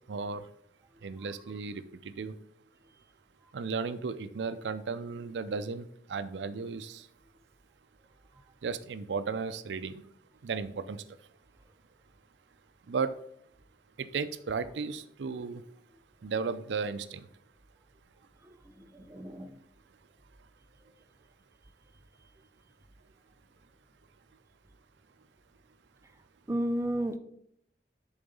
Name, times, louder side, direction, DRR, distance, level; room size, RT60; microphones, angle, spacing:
voice 1, 0.1-0.4 1.0-2.3 3.5-7.1 8.6-10.0 10.4-11.0 12.9-13.1 14.0-15.6 16.2-17.3, right 5 dB, 90° right, 12 dB, 0.5 m, -35 dB
voice 2, 19.1-19.5 26.5-27.2, right 1 dB, 15° right, 7 dB, 0.4 m, -31 dB
7.1 x 3.9 x 5.3 m, 0.73 s
head